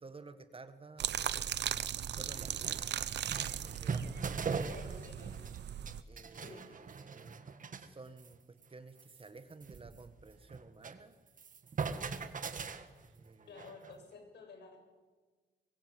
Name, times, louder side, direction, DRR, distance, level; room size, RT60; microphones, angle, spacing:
voice 1, 0.0-1.1 2.1-2.8 3.6-5.1 6.1-7.4 7.7-11.2 13.0-13.5, right 3 dB, 30° right, 11 dB, 1.7 m, -52 dB
sound 1, 1.0-6.0, right 9 dB, 80° right, 1.0 m, -38 dB
sound 2, 2.2-5.6 5.9-7.9 8.2-8.4 8.6-8.7 9.0-11.0 11.3-14.0, right 5 dB, 50° right, 1.8 m, -41 dB
voice 2, 4.7-5.3 6.3-6.6 13.5-14.8, left 4 dB, 75° left, 4 dB, 7.4 m, -52 dB
25.0 x 23.0 x 7.9 m, 1.4 s
wide cardioid pair, 115°, 18 cm